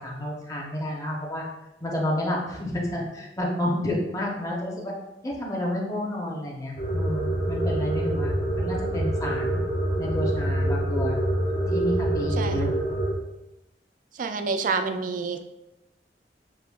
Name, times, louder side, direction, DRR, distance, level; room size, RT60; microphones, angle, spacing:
voice 1, 0.0-1.4 1.8-4.9 5.2-9.6 10.0-11.2 11.7-12.7, left 1 dB, 20° left, -2 dB, 0.8 m, -30 dB
sound 1, 6.8-13.1, right 1 dB, 55° left, 0.8 m, -26 dB
voice 2, 12.3-12.7 14.1-15.4, right 4 dB, 50° right, 8 dB, 0.3 m, -28 dB
6.7 x 2.7 x 2.3 m, 0.94 s
head